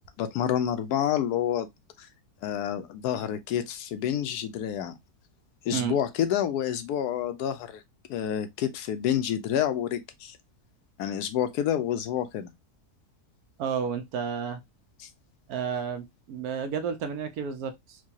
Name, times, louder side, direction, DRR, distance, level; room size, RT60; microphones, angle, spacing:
voice 1, 0.2-1.7 2.0-2.1 2.4-4.9 5.6-7.8 8.1-10.4 11.0-12.5 15.0-15.1, left 10 dB, 80° left, 1.1 m, -28 dB
voice 2, 13.6-14.6 15.5-18.0, right 7 dB, 75° right, 1.1 m, -31 dB
4.5 x 2.2 x 2.7 m
omnidirectional pair, 1.7 m